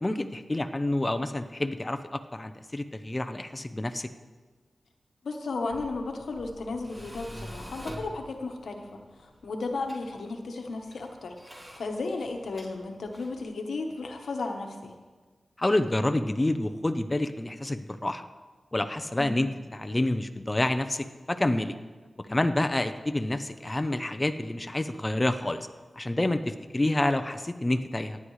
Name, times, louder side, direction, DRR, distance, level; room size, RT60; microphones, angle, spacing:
voice 1, 0.0-4.1 15.6-18.3 18.7-21.8 22.3-25.7 25.9-28.2, left 1 dB, 25° left, 8 dB, 0.7 m, -28 dB
voice 2, 5.2-14.9 19.2-19.4, left 3 dB, 90° left, 4 dB, 1.1 m, -34 dB
Tools, 5.5-13.4, equal, 15° right, 3.4 m, -47 dB
17.5 x 9.6 x 3.2 m, 1.4 s
cardioid pair, 50°, 0 cm